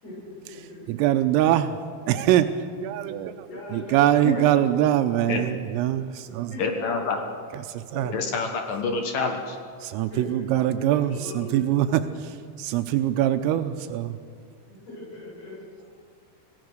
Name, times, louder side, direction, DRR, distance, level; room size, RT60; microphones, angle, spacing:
voice 1, 0.0-0.8 3.5-4.6 6.2-7.3 7.9-8.0 10.1-11.5 11.7-12.0 14.7-15.5, left 2 dB, 30° left, -6 dB, 8.4 m, -40 dB
voice 2, 0.9-1.7 2.1-2.5 2.8-6.5 7.7-8.1 9.8-12.0 12.6-14.1, right 12 dB, 85° right, 8 dB, 3.3 m, -23 dB
voice 3, 6.6-7.2 8.1-9.6, left 4 dB, 70° left, 4 dB, 2.1 m, -27 dB
26.5 x 17.5 x 6.5 m, 2.2 s
omnidirectional pair, 5.9 m